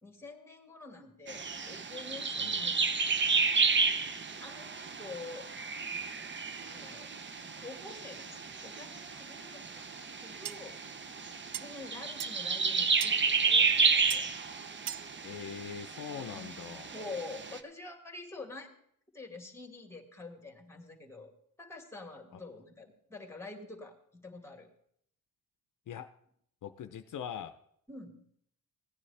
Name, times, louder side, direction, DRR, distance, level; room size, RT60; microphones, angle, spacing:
voice 1, 0.0-3.1 4.4-5.5 6.6-7.1 7.4-9.9 10.2-10.8 11.6-14.3 16.2-18.7 19.1-21.3 21.6-24.7 27.9-28.3, left 3 dB, 10° left, 3 dB, 2.0 m, -47 dB
sound 1, 1.3-17.6, right 5 dB, 35° right, 0.7 m, -32 dB
sound 2, 10.5-10.6 11.5-11.6 12.2-12.3 13.0-13.2 14.1-14.2 14.9-15.1, right 12 dB, 70° right, 0.5 m, -37 dB
voice 2, 15.2-16.9 22.3-22.4 25.9-26.1 26.6-27.6, left 8 dB, 60° left, 8 dB, 0.6 m, -42 dB
16.5 x 9.7 x 3.3 m, 0.67 s
cardioid pair, 110°, 34 cm